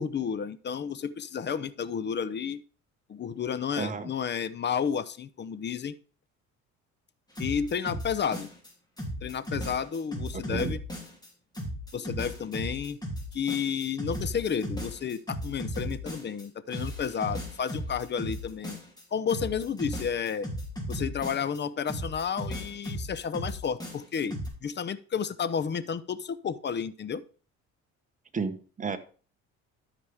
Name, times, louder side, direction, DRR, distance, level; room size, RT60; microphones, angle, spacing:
voice 1, 0.0-2.6 3.1-6.0 7.4-8.5 9.2-10.8 11.9-13.0 13.3-18.8 19.1-20.5 20.9-27.2, left 7 dB, 35° left, 15 dB, 0.7 m, -31 dB
voice 2, 3.8-4.1 10.3-10.7 28.3-29.0, right 5 dB, 25° right, 8 dB, 1.1 m, -32 dB
sound 1, 7.3-8.7 9.0-11.3 11.5-16.4 16.7-19.0 19.3-21.6 21.9-24.5, equal, 10° left, 2.9 m, -36 dB
12.5 x 5.0 x 3.5 m, 0.39 s
cardioid pair, 90°, 32 cm